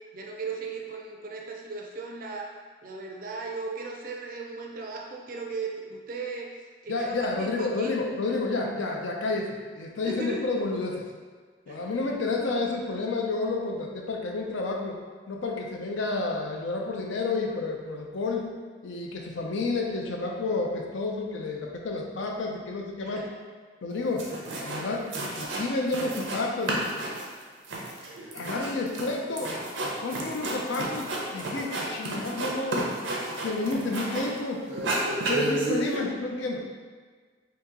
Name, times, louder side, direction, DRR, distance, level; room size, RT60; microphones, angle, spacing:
voice 1, 0.1-2.5 2.8-6.5 6.8-7.9 10.0-10.4 11.7-11.9 23.0-23.3, right 4 dB, 45° right, 0 dB, 0.4 m, -37 dB
voice 2, 6.9-11.1 11.7-15.0 15.3-18.5 18.8-23.3 23.8-24.3 24.6-25.1 25.4-26.8 28.3-29.5 30.0-32.9 33.4-34.6 35.3-36.6, left 3 dB, 80° left, 1 dB, 0.5 m, -30 dB
sound 1, 23.9-24.0 24.2-24.8 25.1-26.4 26.7-34.4 34.7-36.0, right 2 dB, 90° right, 0.6 m, -31 dB
2.9 x 2.8 x 3.6 m, 1.5 s
head